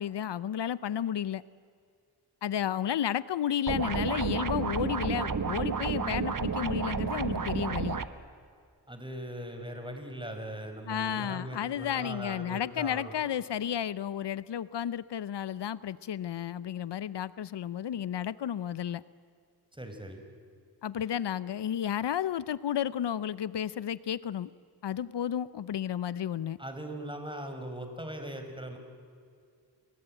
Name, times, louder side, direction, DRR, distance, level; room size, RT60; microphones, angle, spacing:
voice 1, 0.0-1.4 2.4-8.0 10.9-19.0 20.8-24.5 24.8-26.6, left 9 dB, 85° left, 17 dB, 0.7 m, -32 dB
sound 1, 3.7-8.1, right 5 dB, 50° right, 1.4 m, -31 dB
voice 2, 8.9-13.1 19.7-20.2 26.6-28.8, right 1 dB, 10° right, 6 dB, 5.6 m, -40 dB
28.5 x 22.0 x 9.1 m, 2.3 s
cardioid pair, 45°, 41 cm